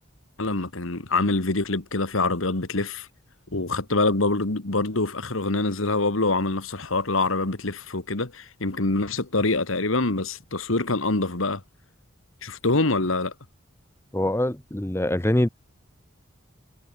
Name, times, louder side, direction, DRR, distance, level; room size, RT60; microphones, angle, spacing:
voice 1, 0.4-3.1 3.5-11.6 12.4-13.3, left 2 dB, 75° left, 1.9 m, -25 dB
voice 2, 14.1-15.5, left 1 dB, 10° left, 0.7 m, -24 dB
head